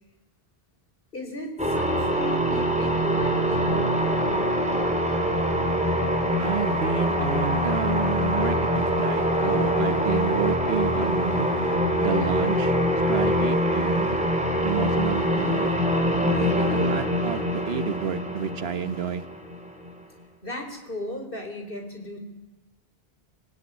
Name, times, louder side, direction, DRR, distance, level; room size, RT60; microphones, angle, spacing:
voice 1, 1.1-4.9 16.4-16.5 20.4-22.2, equal, 60° left, 4 dB, 4.4 m, -36 dB
sound 1, 1.6-19.9, equal, 5° right, 3.4 m, -24 dB
voice 2, 6.4-12.8 13.1-14.2 14.6-15.7 16.6-19.2, right 7 dB, 75° right, 13 dB, 1.4 m, -30 dB
26.0 x 17.5 x 9.7 m, 1.1 s
omnidirectional pair, 1.0 m